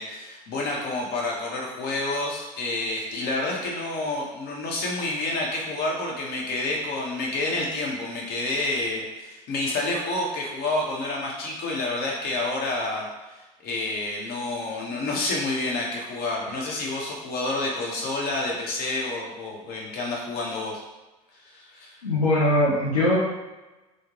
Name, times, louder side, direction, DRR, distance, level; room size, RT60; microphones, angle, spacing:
voice 1, 0.0-13.1 13.6-20.8 21.3-22.0, left 2 dB, 55° left, -1 dB, 0.9 m, -29 dB
voice 2, 22.0-23.2, left 1 dB, 90° left, -8 dB, 0.6 m, -21 dB
3.5 x 2.1 x 3.0 m, 1.1 s
hypercardioid pair, 70°, 19 cm